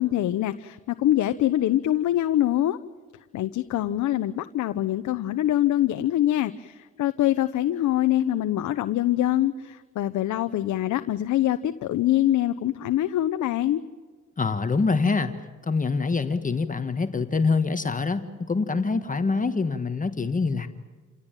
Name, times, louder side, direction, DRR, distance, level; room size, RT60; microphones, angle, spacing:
voice 1, 0.0-2.8 3.3-13.8, left 13 dB, 75° left, 10 dB, 0.9 m, -24 dB
voice 2, 14.4-15.3 15.7-20.7, left 4 dB, 25° left, 9 dB, 1.5 m, -25 dB
28.5 x 17.0 x 9.1 m, 1.5 s
cardioid pair, 90°, 30 cm